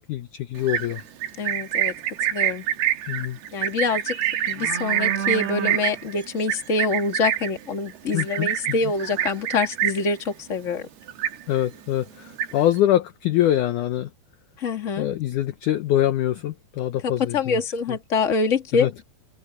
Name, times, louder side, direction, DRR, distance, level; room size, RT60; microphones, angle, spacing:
voice 1, 0.1-1.0 3.1-3.4 8.1-8.5 11.5-14.1 15.0-17.6 18.8-18.9, left 12 dB, 75° left, 1.9 m, -24 dB
Livestock farm animals working animals, 0.6-10.2 10.5-10.8 11.1-11.8 12.1-12.8, right 11 dB, 80° right, 3.9 m, -26 dB
voice 2, 1.4-1.9 2.3-2.6 3.5-10.9 14.6-15.1 17.0-19.0, left 4 dB, 25° left, 1.9 m, -25 dB
omnidirectional pair, 4.5 m